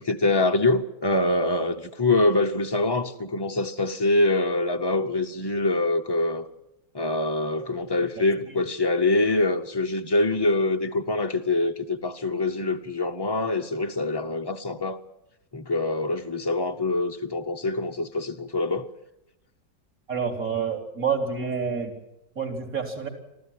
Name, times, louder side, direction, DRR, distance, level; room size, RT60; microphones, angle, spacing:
voice 1, 0.0-6.5 6.9-15.0 15.5-18.9, left 2 dB, 35° left, 0.4 m, -24 dB
voice 2, 20.1-21.9 22.4-23.1, right 6 dB, 50° right, 4.1 m, -28 dB
25.5 x 15.0 x 9.4 m
omnidirectional pair, 1.9 m